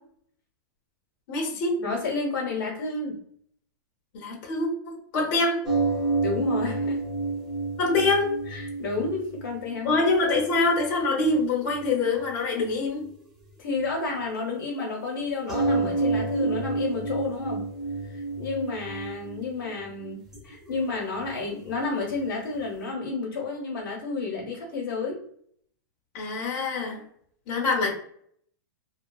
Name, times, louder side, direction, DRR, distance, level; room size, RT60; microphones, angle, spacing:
voice 1, 1.3-1.8 4.1-5.6 7.8-8.3 9.8-13.1 16.4-16.5 26.1-27.0 27.5-27.9, left 3 dB, 35° left, -1 dB, 0.9 m, -25 dB
voice 2, 1.8-3.2 6.2-7.0 8.5-10.0 13.6-17.7 18.0-25.2, left 3 dB, 80° left, -1 dB, 1.0 m, -31 dB
sound 1, 5.6-11.9 13.0-13.1 15.5-22.6, right 3 dB, 5° right, 0.7 m, -29 dB
2.9 x 2.2 x 2.3 m, 0.65 s
supercardioid pair, 160°, 11 cm